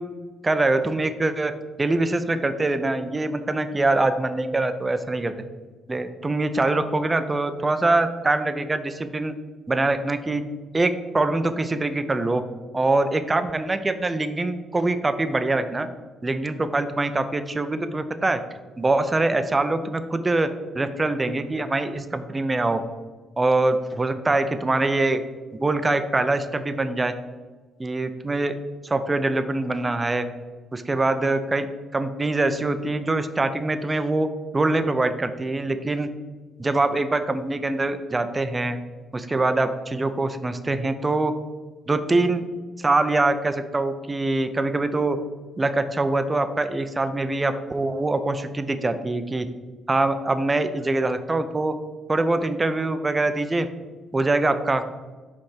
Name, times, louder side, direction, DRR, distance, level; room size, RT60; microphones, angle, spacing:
voice 1, 0.4-1.5 1.8-5.3 5.9-9.3 9.7-10.4 10.7-12.4 12.7-15.9 16.2-18.4 18.8-20.5 20.7-22.8 23.4-25.2 25.5-27.1 27.8-28.5 28.8-30.2 30.7-34.3 34.5-36.1 36.6-38.8 39.1-41.3 41.9-42.4 42.8-45.2 45.6-49.5 49.9-51.8 52.1-53.7 54.1-54.8, right 2 dB, 20° right, 10 dB, 0.5 m, -23 dB
5.3 x 3.5 x 5.7 m, 1.4 s
cardioid pair, 90°, 0 cm